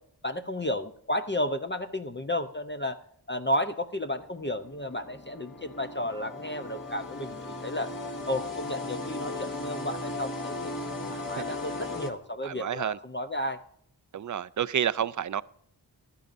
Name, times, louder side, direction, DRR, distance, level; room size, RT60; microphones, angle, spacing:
voice 1, 0.2-3.0 3.3-7.9 8.3-10.8 11.1-13.6, left 1 dB, 25° left, 0.6 m, -32 dB
sound 1, 4.2-12.1, left 2 dB, 50° left, 2.1 m, -37 dB
voice 2, 12.4-13.0 14.1-15.4, right 9 dB, 50° right, 0.4 m, -30 dB
15.5 x 12.0 x 2.6 m
wide cardioid pair, 45°, 41 cm